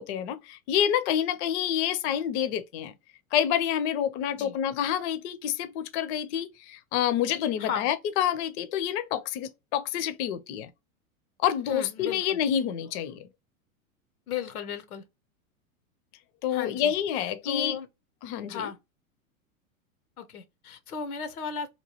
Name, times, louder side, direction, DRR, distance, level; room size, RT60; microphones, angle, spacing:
voice 1, 0.0-2.9 3.3-10.7 11.4-13.3 16.4-17.8 18.2-18.7, left 10 dB, 50° left, 0.6 m, -28 dB
voice 2, 11.7-12.4 14.3-15.0 16.5-17.9 18.5-18.8 20.2-21.7, left 7 dB, 85° left, 0.8 m, -35 dB
3.0 x 2.3 x 2.8 m
hypercardioid pair, 105°, 43 cm